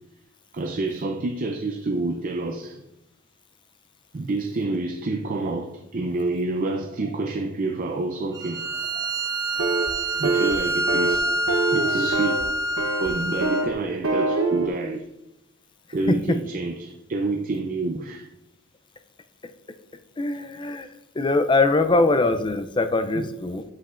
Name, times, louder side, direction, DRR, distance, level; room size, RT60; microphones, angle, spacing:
voice 1, 0.5-2.8 4.1-12.5 13.0-15.1 15.9-18.3 23.1-23.3, right 2 dB, 40° right, 0.5 m, -28 dB
Bowed string instrument, 8.3-13.7, right 1 dB, 15° right, 0.9 m, -26 dB
sound 1, 9.6-9.9 10.2-10.6 10.9-11.2 11.5-12.4 12.8-13.1 13.4-13.7 14.0-14.7, right 3 dB, 75° right, 0.8 m, -24 dB
voice 2, 16.1-16.4 20.2-20.9 21.2-23.6, left 2 dB, 20° left, 0.4 m, -22 dB
8.4 x 7.8 x 2.5 m
head